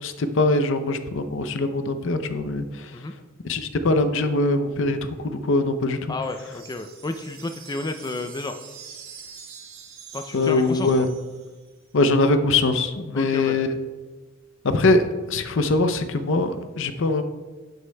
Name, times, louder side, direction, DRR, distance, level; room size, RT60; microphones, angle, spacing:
voice 1, 0.0-2.9 3.5-6.1 10.3-11.1 11.9-13.7 14.6-17.2, left 2 dB, 65° left, 9 dB, 0.6 m, -22 dB
voice 2, 6.1-8.6 10.1-11.1 13.1-13.6, left 2 dB, 20° left, 7 dB, 0.4 m, -31 dB
sound 1, 6.2-11.7, right 6 dB, 85° right, 1.5 m, -44 dB
11.5 x 8.0 x 2.2 m, 1.3 s
head